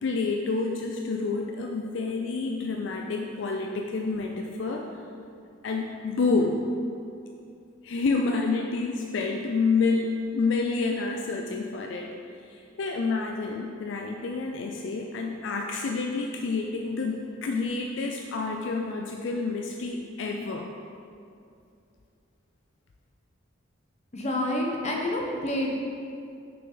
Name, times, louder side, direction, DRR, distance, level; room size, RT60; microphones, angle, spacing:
voice 1, 0.0-4.8 5.6-6.6 7.8-12.1 12.5-20.7, left 4 dB, 70° left, 1 dB, 0.4 m, -28 dB
voice 2, 24.1-25.8, left 1 dB, 35° left, -1 dB, 0.9 m, -28 dB
6.0 x 6.0 x 3.9 m, 2.5 s
head